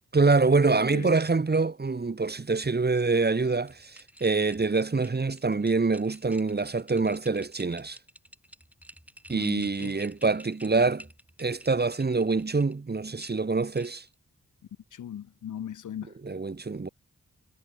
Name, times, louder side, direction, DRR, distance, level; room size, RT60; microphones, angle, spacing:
voice 1, 0.1-8.0 9.3-11.1 11.4-14.0 16.2-16.9, right 3 dB, 30° right, 1.0 m, -25 dB
voice 2, 0.7-1.1 9.3-10.0 14.9-16.1, left 10 dB, 65° left, 0.6 m, -38 dB
sound 1, 3.6-12.7 13.2-14.1, equal, 5° right, 2.2 m, -51 dB
cardioid pair, 55°, 33 cm